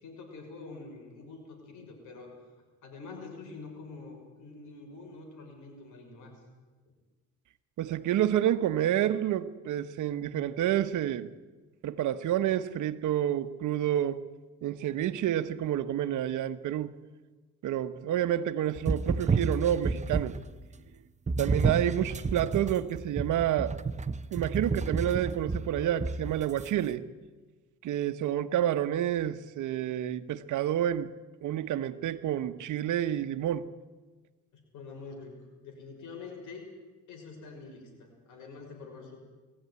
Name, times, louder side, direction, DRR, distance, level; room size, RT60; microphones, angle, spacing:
voice 1, 0.0-2.3 2.8-6.3 34.5-35.4 35.6-36.7 37.1-39.2, left 4 dB, 80° left, 5.8 m, -46 dB
voice 2, 7.8-11.3 11.8-14.2 14.6-16.9 17.6-20.3 21.4-23.7 24.3-27.0 27.8-31.1 31.4-33.7, right 11 dB, 80° right, 1.1 m, -29 dB
sound 1, 18.8-20.5 21.3-26.7, right 4 dB, 25° right, 0.8 m, -31 dB
20.5 x 15.0 x 9.5 m
cardioid pair, 90°, 30 cm